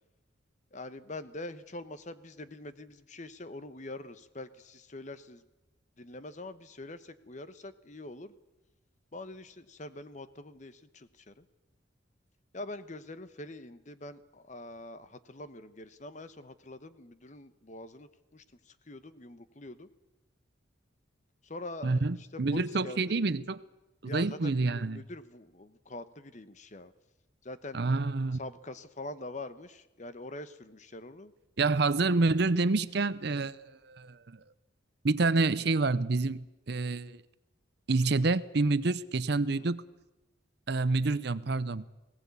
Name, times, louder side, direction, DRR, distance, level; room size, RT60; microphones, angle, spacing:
voice 1, 0.7-5.4 6.0-8.3 9.1-11.4 12.5-19.9 21.4-23.2 24.0-26.9 27.4-27.8 28.4-31.3 39.5-39.6, left 2 dB, 40° left, 12 dB, 1.0 m, -44 dB
voice 2, 21.8-23.6 24.0-25.0 27.7-28.4 31.6-34.4 35.0-37.2 37.9-39.8 40.7-41.9, right 3 dB, 55° right, 16 dB, 0.7 m, -28 dB
19.5 x 18.0 x 8.4 m, 1.0 s
head